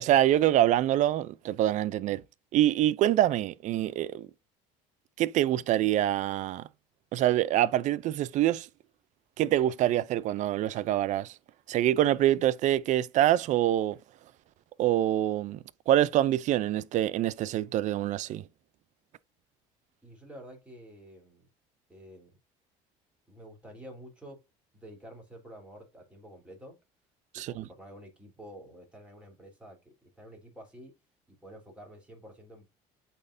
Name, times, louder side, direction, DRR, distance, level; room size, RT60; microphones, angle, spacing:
voice 1, 0.0-2.2 2.5-4.3 5.2-6.7 7.1-8.7 9.4-11.3 11.7-14.0 14.8-15.6 15.9-18.4 27.3-27.7, right 13 dB, 60° right, 0.5 m, -25 dB
voice 2, 20.0-21.5 21.9-22.3 23.3-24.4 24.7-26.8 27.3-30.9 31.3-32.6, equal, 10° right, 3.6 m, -49 dB
8.5 x 4.3 x 2.6 m
supercardioid pair, 100°, 15 cm